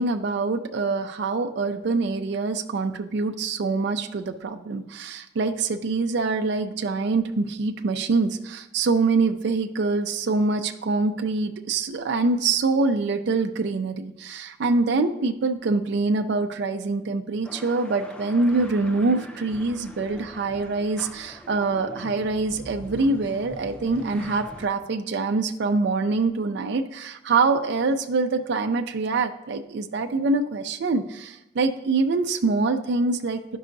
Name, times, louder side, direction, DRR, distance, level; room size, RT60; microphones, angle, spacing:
voice 1, 0.0-33.6, right 3 dB, 60° right, 6 dB, 0.4 m, -25 dB
sound 1, 17.4-24.7, left 1 dB, 5° left, 0.4 m, -42 dB
10.5 x 5.4 x 2.6 m, 0.94 s
head